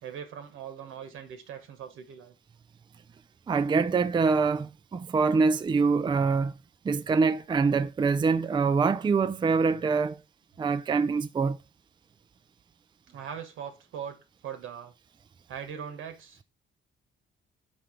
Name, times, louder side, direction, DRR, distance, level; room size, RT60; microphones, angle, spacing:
voice 1, 0.0-2.3 13.1-14.9 15.5-16.4, right 8 dB, 90° right, 1.4 m, -40 dB
voice 2, 3.5-6.5 6.8-10.2 10.6-11.6, right 4 dB, 25° right, 0.4 m, -25 dB
5.2 x 4.4 x 5.0 m
cardioid pair, 90°, 20 cm